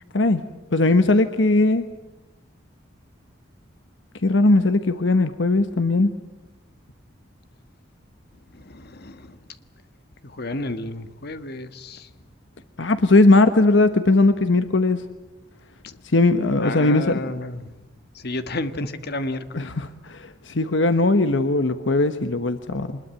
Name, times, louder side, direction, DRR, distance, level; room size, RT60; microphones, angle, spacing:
voice 1, 0.7-1.8 4.2-6.1 12.8-15.0 16.1-17.2 19.6-23.0, left 2 dB, 75° left, 10 dB, 1.1 m, -19 dB
voice 2, 8.5-9.4 10.2-12.1 15.8-16.0 16.6-17.7 18.1-19.7, left 2 dB, 60° left, 10 dB, 1.5 m, -31 dB
25.0 x 21.0 x 9.0 m, 0.99 s
head